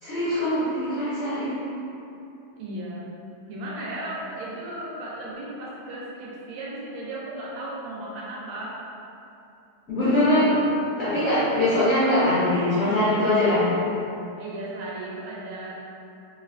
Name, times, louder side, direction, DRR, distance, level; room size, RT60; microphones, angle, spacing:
voice 1, 0.0-1.5 9.9-10.6 11.0-13.7, left 1 dB, 60° left, -14 dB, 0.8 m, -22 dB
voice 2, 2.6-3.1 3.5-8.8 14.4-15.7, right 1 dB, 75° right, -5 dB, 1.4 m, -35 dB
3.1 x 2.9 x 2.4 m, 2.8 s
omnidirectional pair, 2.4 m